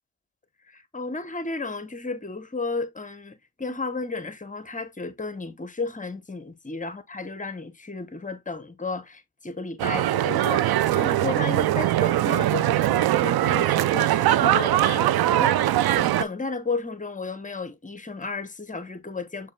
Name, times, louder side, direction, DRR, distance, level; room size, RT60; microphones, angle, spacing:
voice 1, 0.7-19.5, left 3 dB, 20° left, 0.8 m, -33 dB
sound 1, 9.8-16.2, right 13 dB, 60° right, 0.5 m, -21 dB
6.5 x 3.4 x 2.2 m
supercardioid pair, 50°, 43 cm